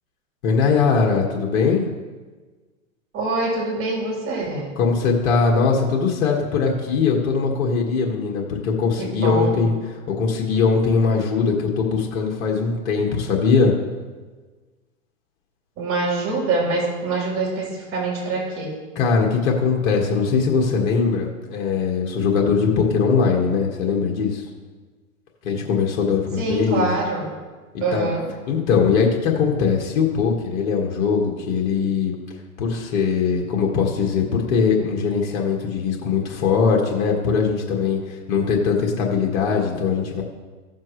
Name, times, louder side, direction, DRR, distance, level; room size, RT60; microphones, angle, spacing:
voice 1, 0.4-1.9 4.8-9.7 10.2-13.7 19.0-24.4 25.5-26.9 27.9-28.1 28.5-32.1 32.6-38.0 38.3-40.2, left 5 dB, 60° left, -1 dB, 1.8 m, -21 dB
voice 2, 3.1-4.7 9.0-9.6 15.8-18.7 26.4-27.3 27.8-28.3, right 3 dB, 30° right, -3 dB, 3.6 m, -24 dB
15.0 x 7.3 x 3.2 m, 1.4 s
hypercardioid pair, 125°, 41 cm